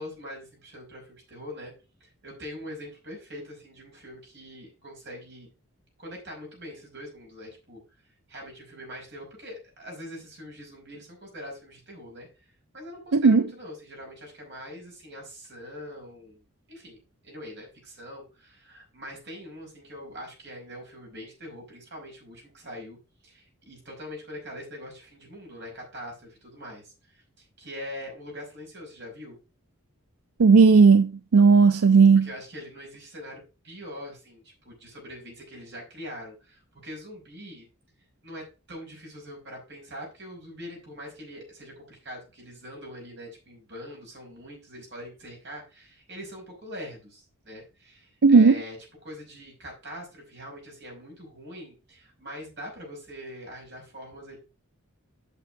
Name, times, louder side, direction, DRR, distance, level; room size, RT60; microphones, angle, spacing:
voice 1, 0.0-1.7 2.0-5.5 6.0-7.8 8.3-12.3 12.7-16.4 16.7-17.0 17.2-23.0 23.2-29.4 32.2-33.4 33.6-37.7 38.2-48.8 49.0-54.4, equal, 50° right, 5.3 m, -43 dB
voice 2, 13.1-13.4 30.4-32.3 48.2-48.6, right 4 dB, 85° right, 0.5 m, -15 dB
8.7 x 6.1 x 4.7 m
head